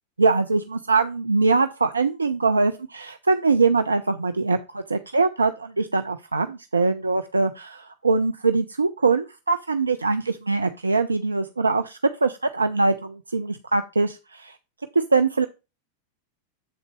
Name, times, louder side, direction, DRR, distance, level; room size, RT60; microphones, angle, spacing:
voice 1, 0.2-14.5 15.1-15.5, right 4 dB, 80° right, 9 dB, 0.4 m, -22 dB
7.9 x 3.9 x 4.6 m, 0.28 s
figure-of-eight pair, 90°, 0 cm